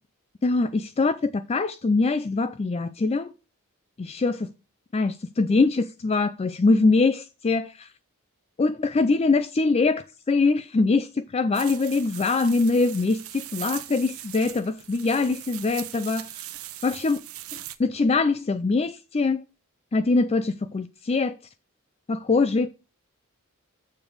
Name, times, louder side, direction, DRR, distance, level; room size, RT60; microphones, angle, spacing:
voice 1, 0.4-3.3 4.0-4.5 4.9-7.9 8.6-16.3 16.8-17.2 17.8-19.4 19.9-21.3 22.1-22.7, left 3 dB, 30° left, 0.4 m, -23 dB
sound 1, 11.5-17.8, right 14 dB, 80° right, 0.8 m, -40 dB
7.0 x 5.2 x 6.2 m
head